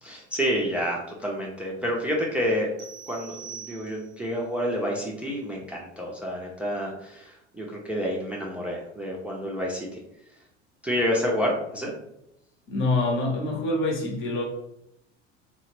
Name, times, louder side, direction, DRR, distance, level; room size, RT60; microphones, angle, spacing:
voice 1, 0.0-2.7 3.1-10.0 10.8-11.9, equal, 5° right, 0.5 m, -29 dB
sound 1, 2.8-4.3, right 7 dB, 45° right, 0.6 m, -43 dB
voice 2, 12.7-14.4, left 2 dB, 35° left, 0.9 m, -25 dB
2.7 x 2.1 x 3.0 m
hypercardioid pair, 75°, 37 cm